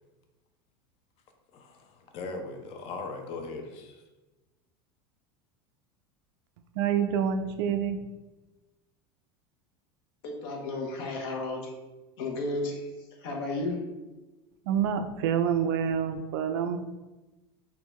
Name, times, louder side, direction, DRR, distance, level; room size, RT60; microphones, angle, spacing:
voice 1, 1.5-4.0, left 3 dB, 50° left, 4 dB, 0.6 m, -39 dB
voice 2, 6.8-8.1 14.7-16.8, right 8 dB, 75° right, 7 dB, 0.4 m, -27 dB
voice 3, 10.2-11.7 12.2-12.9 13.2-13.9, left 2 dB, 70° left, 1 dB, 0.8 m, -33 dB
3.6 x 2.3 x 3.1 m, 1.1 s
supercardioid pair, 115°, 13 cm